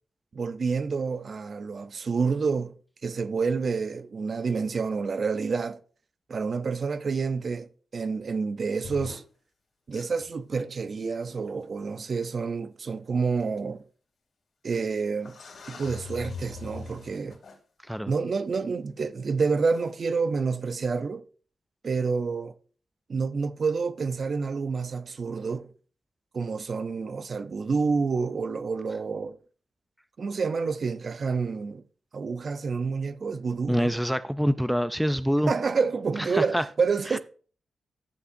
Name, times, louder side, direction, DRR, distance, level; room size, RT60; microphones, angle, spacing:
voice 1, 0.3-2.7 3.0-5.8 6.3-9.2 9.9-13.8 14.6-15.4 15.7-17.4 18.1-21.2 21.8-22.5 23.1-25.7 26.3-29.4 30.2-31.8 32.1-34.0 35.5-37.2, right 5 dB, 50° right, 0.6 m, -28 dB
sound 1, 8.8-9.2 9.9-10.3 11.6-11.7 12.2-12.3 13.4-13.5 14.7-14.8 15.2-17.6 19.7-19.9, left 4 dB, 65° left, 2.5 m, -41 dB
voice 2, 33.7-35.5 36.3-36.6 37.1-37.2, equal, ahead, 0.4 m, -25 dB
15.5 x 5.9 x 2.7 m
cardioid pair, 80°, 0 cm